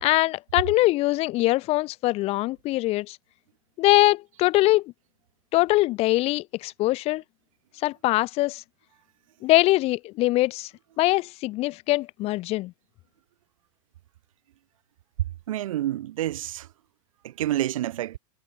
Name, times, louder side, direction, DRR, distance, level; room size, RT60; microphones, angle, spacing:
voice 1, 0.0-3.2 3.8-4.9 5.5-7.2 7.8-8.6 9.4-10.7 11.0-12.7, left 18 dB, 40° left, 0.6 m, -22 dB
voice 2, 15.5-16.7 17.2-18.2, right 13 dB, 85° right, 1.0 m, -28 dB
supercardioid pair, 130°, 17 cm